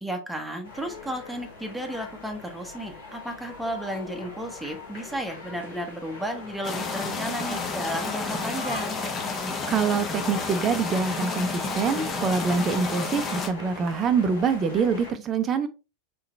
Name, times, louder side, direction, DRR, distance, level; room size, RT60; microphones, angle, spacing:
voice 1, 0.0-9.0, equal, 5° right, 1.0 m, -33 dB
sound 1, 0.6-15.1, left 3 dB, 70° left, 2.3 m, -41 dB
sound 2, 6.6-13.5, left 4 dB, 25° left, 1.1 m, -31 dB
voice 2, 9.7-15.7, right 5 dB, 25° right, 0.6 m, -25 dB
4.2 x 3.8 x 3.2 m
figure-of-eight pair, 90°, 0 cm